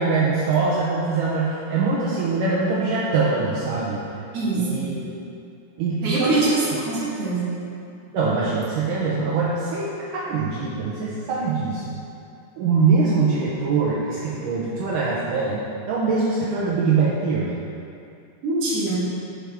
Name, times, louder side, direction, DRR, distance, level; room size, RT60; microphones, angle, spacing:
voice 1, 0.0-4.0 4.5-5.0 5.8-6.6 8.1-12.0 12.6-15.6 15.9-17.6, right 4 dB, 90° right, -7 dB, 1.8 m, -23 dB
voice 2, 4.3-4.9 6.0-7.4 18.4-19.0, right 2 dB, 50° right, -8 dB, 1.9 m, -23 dB
8.7 x 6.2 x 3.5 m, 2.5 s
omnidirectional pair, 4.8 m